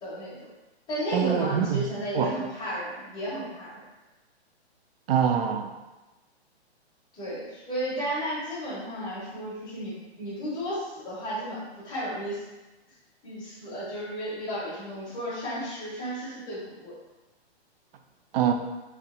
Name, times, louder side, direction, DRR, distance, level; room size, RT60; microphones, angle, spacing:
voice 1, 0.0-0.5 0.9-3.8 7.1-12.4 13.2-17.0, equal, 15° left, -9 dB, 1.1 m, -33 dB
voice 2, 1.1-1.8 2.1-2.3 5.1-5.8 18.3-18.5, right 8 dB, 60° right, 6 dB, 0.4 m, -24 dB
3.3 x 2.8 x 2.5 m, 1.1 s
hypercardioid pair, 145°, 33 cm